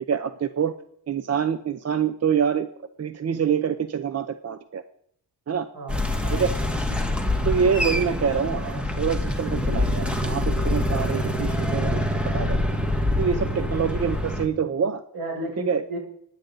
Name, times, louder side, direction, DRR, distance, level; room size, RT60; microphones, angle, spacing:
voice 1, 0.1-0.7 1.1-2.7 3.0-4.8 5.5-5.7 6.3-6.5 7.5-12.6 13.2-15.0 15.7-15.8, right 7 dB, 40° right, 10 dB, 0.6 m, -26 dB
voice 2, 5.7-6.5 13.4-13.7 15.1-16.0, right 2 dB, 65° right, 0 dB, 6.8 m, -34 dB
sound 1, 5.9-14.4, left 1 dB, 5° right, 1.8 m, -25 dB
24.5 x 10.5 x 4.0 m, 0.67 s
wide cardioid pair, 125°, 41 cm